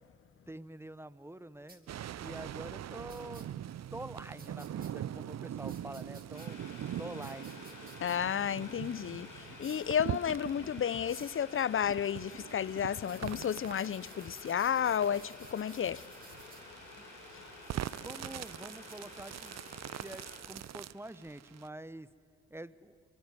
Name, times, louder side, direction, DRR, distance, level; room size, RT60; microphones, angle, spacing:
voice 1, 0.5-3.6 3.9-6.6 7.0-7.6 17.0-17.1 18.0-19.6 20.0-22.1 22.5-23.0, right 1 dB, 10° right, 1.0 m, -46 dB
sound 1, 1.7-1.8 3.1-3.4 4.4-4.9 5.7-6.5 7.2-8.2 9.6-9.9 11.1-11.4 13.0-16.6 17.6-20.9, right 3 dB, 30° right, 3.5 m, -57 dB
sound 2, 1.9-21.7, right 11 dB, 55° right, 0.6 m, -43 dB
Boiling, 6.3-20.4, left 3 dB, 80° left, 6.2 m, -51 dB
voice 2, 8.0-16.0, left 8 dB, 40° left, 0.6 m, -32 dB
24.0 x 21.0 x 9.6 m
supercardioid pair, 45°, 31 cm